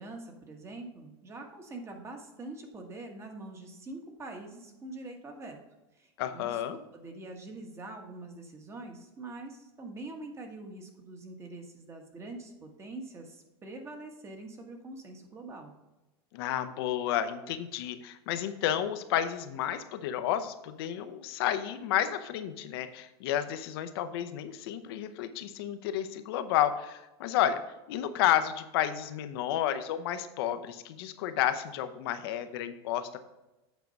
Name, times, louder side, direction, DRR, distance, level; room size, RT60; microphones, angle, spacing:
voice 1, 0.0-5.6 5.9-6.6 6.9-15.7, right 2 dB, 20° right, 3 dB, 1.3 m, -44 dB
voice 2, 6.2-6.8 16.3-27.6 27.9-33.2, left 11 dB, 65° left, 10 dB, 0.8 m, -31 dB
8.3 x 4.5 x 5.3 m, 1.0 s
supercardioid pair, 130°, 14 cm